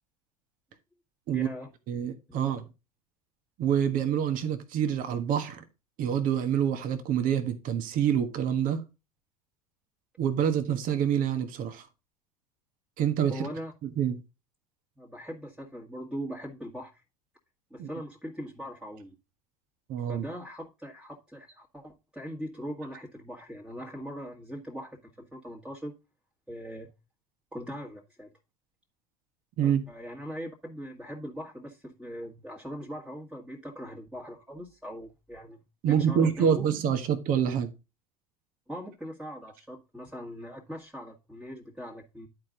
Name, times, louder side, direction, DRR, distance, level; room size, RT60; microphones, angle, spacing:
voice 1, 1.3-1.7 2.3-2.5 13.3-13.7 15.0-17.0 17.7-19.2 20.1-25.9 26.5-26.9 27.5-28.3 29.6-35.6 35.9-36.7 38.7-42.3, equal, 5° right, 1.9 m, -40 dB
voice 2, 1.9-2.6 3.6-5.6 6.0-8.8 10.2-11.9 13.0-13.5 14.0-14.2 17.8-17.9 19.9-20.2 29.6-29.8 35.8-37.7, right 8 dB, 50° right, 1.4 m, -26 dB
10.5 x 5.0 x 3.8 m
figure-of-eight pair, 75°, 19 cm